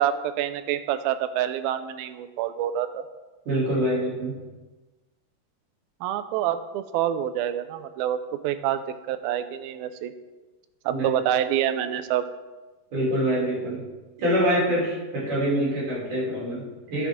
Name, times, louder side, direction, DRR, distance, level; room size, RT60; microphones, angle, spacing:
voice 1, 0.0-3.0 6.0-8.2 8.4-10.1 10.9-12.2, right 11 dB, 90° right, 11 dB, 2.4 m, -27 dB
voice 2, 3.5-4.4 10.9-11.1 12.9-13.8 14.2-17.1, equal, 60° right, -6 dB, 4.3 m, -25 dB
13.5 x 7.3 x 3.6 m, 1.2 s
omnidirectional pair, 4.2 m